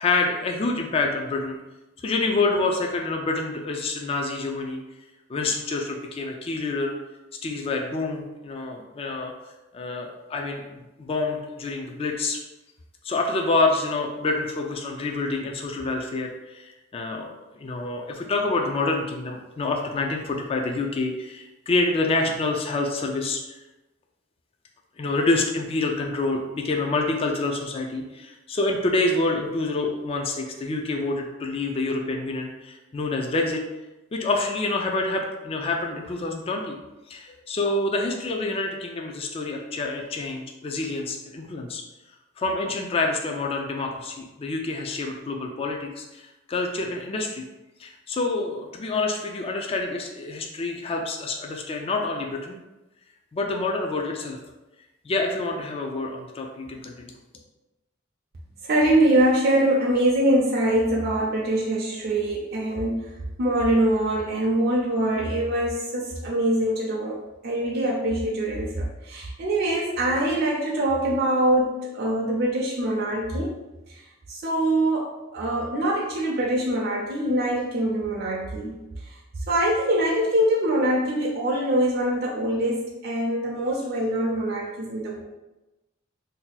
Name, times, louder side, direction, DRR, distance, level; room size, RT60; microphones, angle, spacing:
voice 1, 0.0-1.6 2.0-4.8 5.3-6.9 7.4-9.3 9.7-12.4 13.0-17.3 17.6-23.4 25.0-33.6 34.1-36.8 37.1-41.8 42.4-47.4 47.8-52.6 53.3-54.4 55.0-57.1, left 3 dB, 30° left, 1 dB, 0.3 m, -27 dB
voice 2, 58.6-63.1 63.4-73.6 73.9-79.2 79.5-85.2, right 1 dB, 55° right, -3 dB, 0.5 m, -24 dB
2.7 x 2.2 x 3.9 m, 1.0 s
head